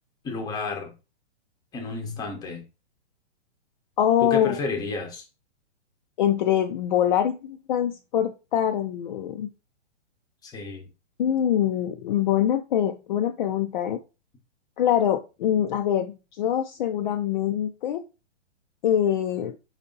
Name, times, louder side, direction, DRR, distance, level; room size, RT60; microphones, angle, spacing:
voice 1, 0.2-0.9 1.7-2.6 4.2-5.2 10.4-10.9, left 3 dB, 10° left, 0.8 m, -31 dB
voice 2, 4.0-4.6 6.2-9.5 11.2-14.0 14.8-18.0 18.8-19.6, left 10 dB, 40° left, 0.5 m, -24 dB
4.8 x 2.8 x 3.8 m
hypercardioid pair, 140°, 36 cm